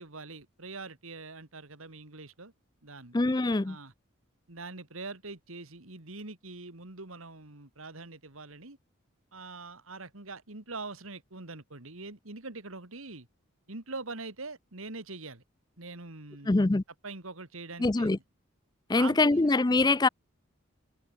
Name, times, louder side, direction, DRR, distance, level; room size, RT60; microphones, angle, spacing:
voice 1, 0.0-2.5 2.8-3.2 3.6-3.9 4.5-8.8 9.3-13.3 13.7-15.4 15.8-16.6 17.0-18.2 18.9-19.5, right 3 dB, 85° right, 2.6 m, -43 dB
voice 2, 3.1-3.8 16.5-16.8 17.8-18.2 18.9-20.1, left 2 dB, 20° left, 0.4 m, -24 dB
head